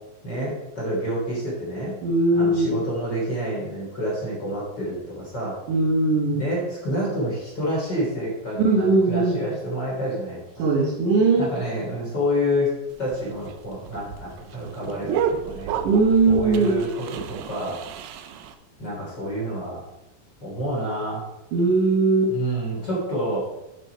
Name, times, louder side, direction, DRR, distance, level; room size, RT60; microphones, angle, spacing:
voice 1, 0.2-1.9 2.3-5.6 6.2-10.7 11.3-12.7 13.0-15.8 16.3-17.8 18.8-19.8 20.4-21.2 22.3-23.5, equal, 30° left, -6 dB, 3.8 m, -28 dB
voice 2, 2.0-2.7 5.7-6.4 8.6-9.4 10.6-11.5 15.8-16.8 21.5-22.3, right 3 dB, 65° right, -2 dB, 2.8 m, -19 dB
sound 1, 12.9-18.5, right 8 dB, 80° right, 2.3 m, -31 dB
9.3 x 6.6 x 4.6 m, 0.94 s
omnidirectional pair, 4.3 m